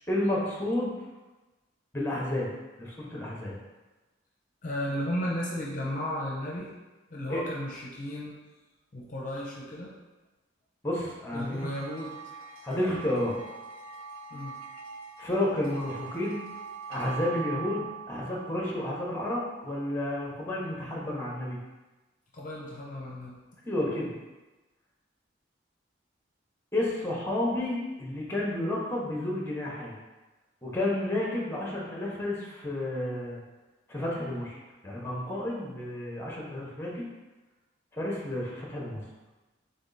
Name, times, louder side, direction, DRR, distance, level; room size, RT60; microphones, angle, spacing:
voice 1, 0.1-0.9 1.9-2.5 2.8-3.6 7.3-7.4 10.8-11.7 12.6-13.4 15.2-16.4 16.9-21.6 23.6-24.1 26.7-29.9 30.6-33.4 33.9-34.6 34.8-37.1 37.9-39.0, left 1 dB, 10° left, -3 dB, 0.9 m, -31 dB
voice 2, 4.6-6.7 7.1-8.3 8.9-9.9 11.3-12.1 14.3-14.6 22.3-23.4, left 1 dB, 40° left, -3 dB, 0.7 m, -34 dB
sound 1, 11.3-20.0, right 6 dB, 90° right, 0.5 m, -43 dB
3.8 x 3.4 x 4.0 m, 1.1 s
head